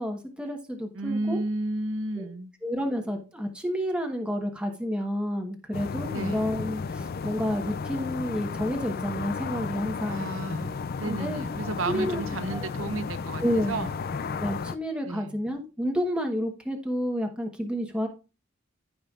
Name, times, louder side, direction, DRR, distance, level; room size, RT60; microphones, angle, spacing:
voice 1, 0.0-1.4 2.1-2.3 2.6-10.2 11.0-11.5 11.8-12.2 12.5-12.7 13.4-13.8 14.4-18.1, equal, 5° right, 1.1 m, -30 dB
voice 2, 0.9-2.5 6.1-6.5 10.1-13.9 15.0-15.4, right 2 dB, 70° right, 0.8 m, -32 dB
sound 1, 5.7-14.8, left 5 dB, 45° left, 0.4 m, -33 dB
15.0 x 5.4 x 2.4 m
head